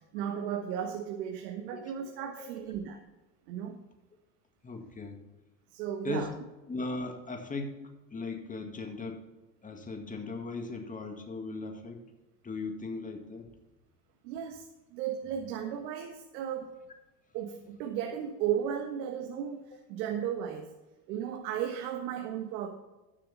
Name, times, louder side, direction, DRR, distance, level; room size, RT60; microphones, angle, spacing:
voice 1, 0.1-3.0 3.5-3.8 5.7-6.3 14.2-16.7 17.3-20.7 21.1-22.7, right 9 dB, 75° right, 2 dB, 1.6 m, -35 dB
voice 2, 4.6-5.2 6.0-6.3 6.7-7.8 8.1-9.3 9.6-12.0 12.4-13.5, left 3 dB, 15° left, 3 dB, 2.0 m, -38 dB
13.0 x 7.5 x 4.1 m, 1.1 s
supercardioid pair, 105°, 50 cm